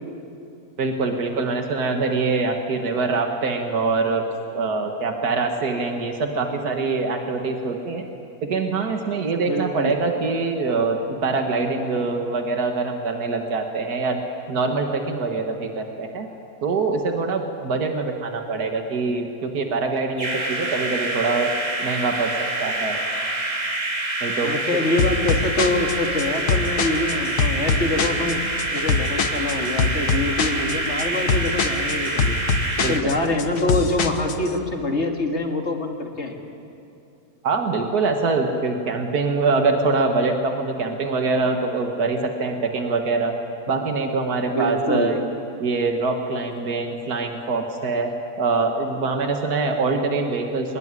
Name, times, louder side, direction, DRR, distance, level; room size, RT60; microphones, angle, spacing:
voice 1, 0.8-4.2 4.5-8.1 8.4-14.2 14.5-16.3 16.6-21.5 21.8-22.3 22.6-23.0 24.2-24.5 32.8-33.1 37.4-43.3 43.7-45.2 45.6-48.1 48.4-50.8, right 3 dB, 85° right, 3 dB, 2.1 m, -24 dB
voice 2, 9.4-10.0 24.4-28.4 28.7-32.4 32.9-36.3 44.5-45.1, left 2 dB, 45° left, 2 dB, 2.7 m, -25 dB
sound 1, 20.2-33.0, right 2 dB, 25° right, 2.2 m, -27 dB
sound 2, 25.0-34.5, left 4 dB, 90° left, 1.8 m, -24 dB
24.5 x 20.0 x 9.7 m, 2.7 s
omnidirectional pair, 1.6 m